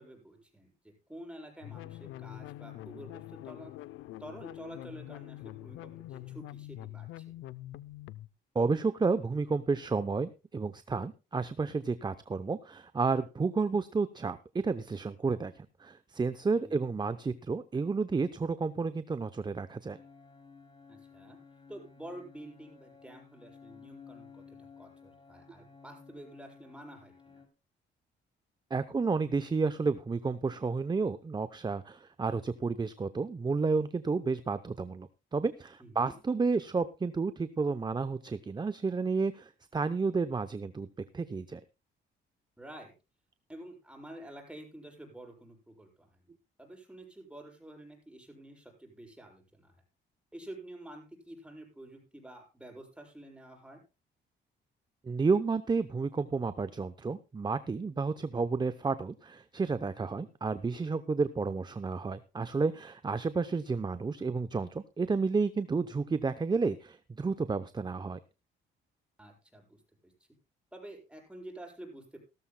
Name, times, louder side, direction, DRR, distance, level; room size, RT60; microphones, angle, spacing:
voice 1, 0.0-3.7 4.2-7.3 16.6-16.8 20.9-21.4 21.7-27.4 35.8-36.2 42.6-42.9 43.5-46.3 46.6-49.8 50.3-53.8 60.1-60.3 69.2-69.7 70.0-70.1 70.7-72.2, right 1 dB, 5° right, 1 dB, 7.0 m, -49 dB
sound 1, 1.6-8.3, left 15 dB, 90° left, 0.6 m, -45 dB
voice 2, 8.5-20.0 28.7-40.9 41.1-41.6 55.0-68.2, right 4 dB, 20° right, 12 dB, 0.7 m, -31 dB
sound 2, 19.9-27.5, left 5 dB, 25° left, 3.2 m, -55 dB
17.5 x 13.5 x 2.2 m, 0.29 s
cardioid pair, 90°, 20 cm